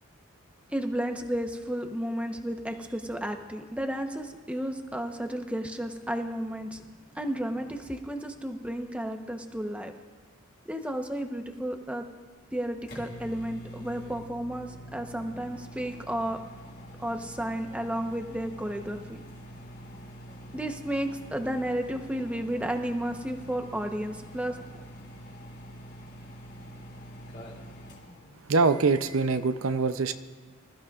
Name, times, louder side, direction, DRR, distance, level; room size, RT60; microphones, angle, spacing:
voice 1, 0.7-6.8 7.1-9.9 10.6-12.0 12.5-16.4 17.0-19.2 20.5-24.9, right 1 dB, 5° right, 4 dB, 0.9 m, -32 dB
sound 1, 12.3-29.3, equal, 50° left, 3.2 m, -46 dB
voice 2, 28.5-30.1, right 4 dB, 70° right, 10 dB, 0.6 m, -24 dB
25.5 x 14.5 x 2.4 m, 1.4 s
head